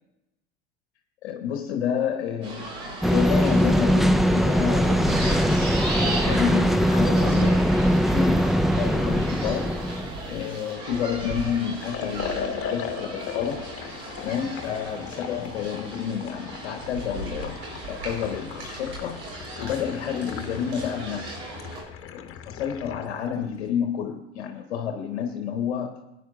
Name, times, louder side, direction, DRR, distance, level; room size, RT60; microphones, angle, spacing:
voice 1, 1.2-5.5 6.0-7.7 8.1-9.8 10.3-13.7 14.2-17.6 17.9-19.2 19.6-21.4 22.0-26.0, left 8 dB, 75° left, 5 dB, 0.9 m, -30 dB
sound 1, 2.4-21.8, right 2 dB, 75° right, 4.0 m, -36 dB
sound 2, 3.0-10.3, equal, ahead, 0.4 m, -21 dB
Liquid, 11.9-23.1, left 7 dB, 45° left, 1.1 m, -38 dB
20.5 x 9.7 x 2.4 m, 0.92 s
hypercardioid pair, 70°, 32 cm